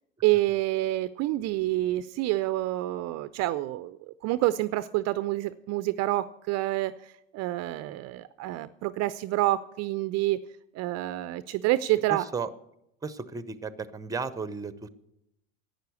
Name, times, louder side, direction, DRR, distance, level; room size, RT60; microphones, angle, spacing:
voice 1, 0.2-10.4 10.7-12.3, right 16 dB, 45° right, 15 dB, 0.5 m, -28 dB
voice 2, 12.1-12.5 13.0-14.9, right 4 dB, 10° right, 15 dB, 0.7 m, -34 dB
11.5 x 9.0 x 8.2 m, 0.84 s
hypercardioid pair, 75°, 38 cm